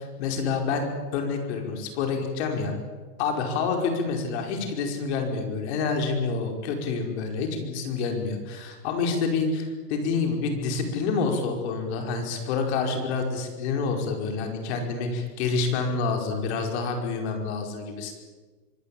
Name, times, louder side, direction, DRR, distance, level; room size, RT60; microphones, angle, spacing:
voice 1, 0.0-2.7 3.2-18.1, left 4 dB, 45° left, 3 dB, 5.1 m, -28 dB
25.0 x 19.5 x 8.7 m, 1.4 s
hypercardioid pair, 150°, 47 cm